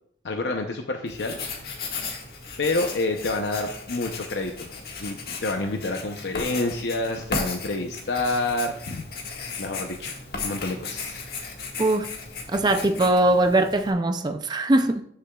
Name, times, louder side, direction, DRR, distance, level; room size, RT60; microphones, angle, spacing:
voice 1, 0.2-1.4 2.6-4.7 5.0-9.0 9.6-11.3, left 2 dB, 80° left, 0.7 m, -28 dB
Writing, 1.1-13.9, left 4 dB, 60° left, 1.7 m, -36 dB
voice 2, 11.8-12.1 12.5-15.0, right 2 dB, 25° right, 0.4 m, -21 dB
13.5 x 6.7 x 2.3 m
head